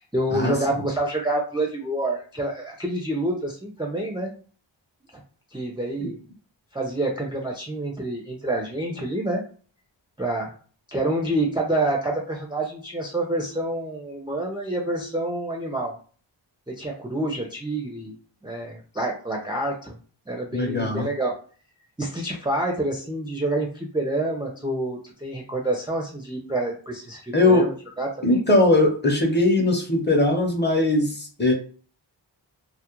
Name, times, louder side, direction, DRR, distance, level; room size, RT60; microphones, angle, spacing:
voice 1, 0.0-4.3 5.5-6.2 6.7-9.4 10.2-10.5 10.9-15.9 16.7-18.1 18.4-20.0 20.3-21.3 22.0-28.5, right 1 dB, 10° right, -1 dB, 0.4 m, -27 dB
voice 2, 20.5-21.1 27.3-27.6 28.2-31.5, left 2 dB, 20° left, 2 dB, 0.7 m, -20 dB
2.3 x 2.1 x 2.9 m, 0.41 s
wide cardioid pair, 45°, 49 cm